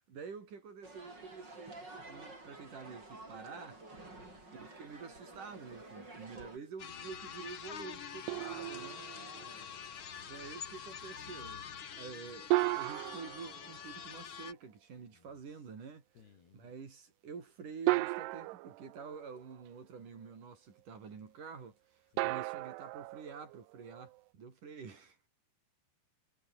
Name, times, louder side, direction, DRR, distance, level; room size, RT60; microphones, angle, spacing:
voice 1, 0.1-3.8 4.5-9.1 10.3-11.7 12.0-12.5 12.7-16.0 16.5-25.2, right 5 dB, 50° right, 5.3 m, -48 dB
sound 1, 0.8-6.6, right 2 dB, 25° right, 7.7 m, -51 dB
voice 2, 4.1-4.5 9.1-10.2 15.1-15.6 16.2-16.7 22.1-22.4, left 8 dB, 70° left, 5.0 m, -64 dB
sound 2, 6.8-14.5, left 7 dB, 50° left, 1.5 m, -46 dB
sound 3, 8.3-9.7 12.5-14.5 16.2-16.3 17.9-19.7 22.2-24.2, right 21 dB, 85° right, 2.6 m, -36 dB
omnidirectional pair, 4.9 m